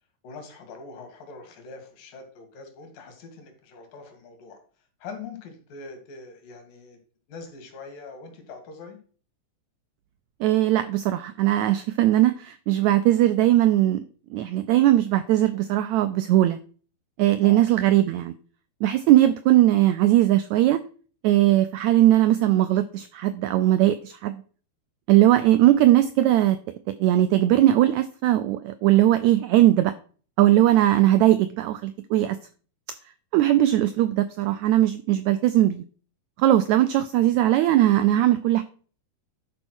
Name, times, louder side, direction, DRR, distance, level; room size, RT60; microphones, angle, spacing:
voice 1, 0.2-4.6 5.0-7.0 7.3-9.0 17.4-17.6 30.8-30.9, left 4 dB, 90° left, 6 dB, 3.6 m, -43 dB
voice 2, 10.4-14.0 14.3-16.6 17.2-18.3 18.8-20.8 21.2-24.4 25.1-26.6 27.0-29.9 30.4-32.4 33.3-35.8 36.4-38.6, right 14 dB, 80° right, 12 dB, 1.7 m, -19 dB
11.5 x 4.5 x 6.2 m, 0.41 s
omnidirectional pair, 3.8 m